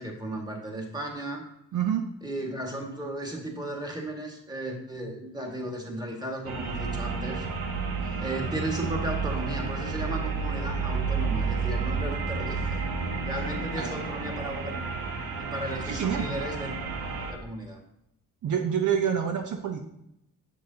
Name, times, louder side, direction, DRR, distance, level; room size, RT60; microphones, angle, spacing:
voice 1, 0.0-1.4 2.2-7.5 8.2-12.8 13.2-14.9 15.4-16.9 17.3-17.8, right 1 dB, 10° right, 1 dB, 1.7 m, -35 dB
voice 2, 1.7-2.0 8.0-8.1 13.8-13.9 15.9-16.3 18.4-19.8, right 8 dB, 55° right, 4 dB, 0.7 m, -27 dB
sound 1, 6.5-17.3, right 4 dB, 85° right, 1.0 m, -31 dB
6.8 x 6.2 x 2.8 m, 0.79 s
supercardioid pair, 65°, 35 cm